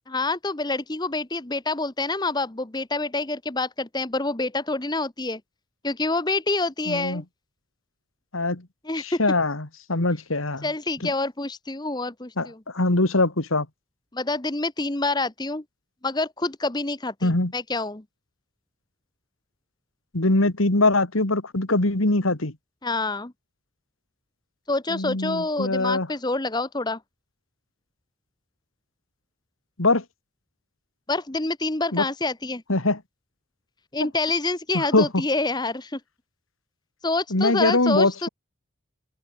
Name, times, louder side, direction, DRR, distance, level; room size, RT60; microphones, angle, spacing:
voice 1, 0.1-5.4 5.8-7.2 8.8-9.2 10.6-12.6 14.1-15.6 16.0-18.0 22.8-23.3 24.7-27.0 31.1-32.6 33.9-36.0 37.0-38.3, left 2 dB, 20° left, 1.0 m, -27 dB
voice 2, 6.9-7.2 8.3-8.6 9.0-10.7 11.0-11.1 12.4-12.5 12.7-13.7 17.2-17.5 20.1-22.5 24.9-26.1 29.8-30.0 31.9-32.1 32.7-33.0 34.0-34.1 34.7-35.1 37.3-38.3, left 2 dB, 80° left, 2.3 m, -22 dB
head